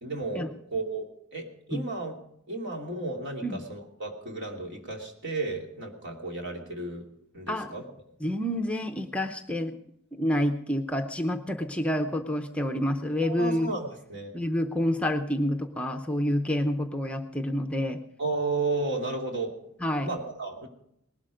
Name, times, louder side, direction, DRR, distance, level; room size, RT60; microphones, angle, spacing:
voice 1, 0.0-2.1 2.5-7.1 7.3-7.8 13.2-14.3 18.2-19.5 20.0-20.7, right 3 dB, 55° right, 1 dB, 2.9 m, -33 dB
voice 2, 7.5-7.8 8.2-9.8 10.1-13.7 14.3-18.0 19.8-20.1, left 1 dB, 5° left, 5 dB, 0.7 m, -28 dB
19.0 x 12.0 x 5.1 m, 0.74 s
head